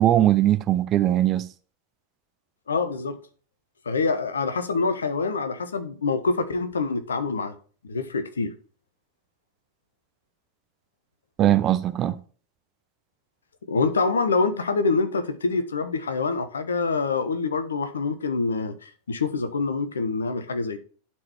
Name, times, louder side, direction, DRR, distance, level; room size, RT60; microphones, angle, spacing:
voice 1, 0.0-1.5 11.4-12.1, right 12 dB, 30° right, 0.8 m, -20 dB
voice 2, 2.7-3.2 3.8-7.5 7.8-8.5 13.7-20.8, left 4 dB, 70° left, 1.2 m, -26 dB
11.5 x 4.7 x 4.3 m
figure-of-eight pair, 90°, 0 cm